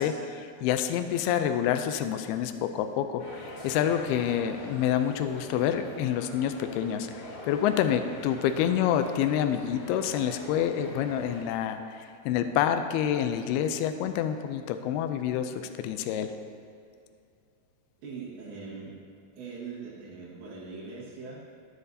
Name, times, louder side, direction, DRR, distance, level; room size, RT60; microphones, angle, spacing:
voice 1, 0.0-7.1 7.4-16.3, left 9 dB, 85° left, 8 dB, 2.3 m, -28 dB
sound 1, 3.2-11.4, left 1 dB, 65° left, 4.6 m, -44 dB
voice 2, 18.0-19.0 19.4-21.4, right 4 dB, 90° right, -7 dB, 4.1 m, -41 dB
14.5 x 10.0 x 2.8 m, 2.4 s
omnidirectional pair, 5.0 m